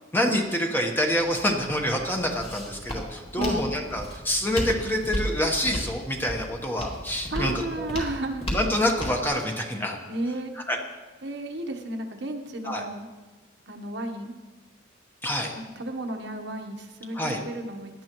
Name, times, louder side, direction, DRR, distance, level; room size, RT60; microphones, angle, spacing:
voice 1, 0.1-7.9 8.5-10.0 10.5-10.8 12.6-12.8 15.2-15.5 17.1-17.4, left 1 dB, 10° left, 2 dB, 1.1 m, -27 dB
Walk footsteps, 1.2-9.3, equal, 30° left, 2.6 m, -35 dB
voice 2, 3.3-3.7 7.3-8.4 10.1-10.5 11.2-13.1 13.7-14.3 15.5-18.0, right 1 dB, 60° right, 4 dB, 1.1 m, -33 dB
17.0 x 11.0 x 3.1 m, 1.2 s
head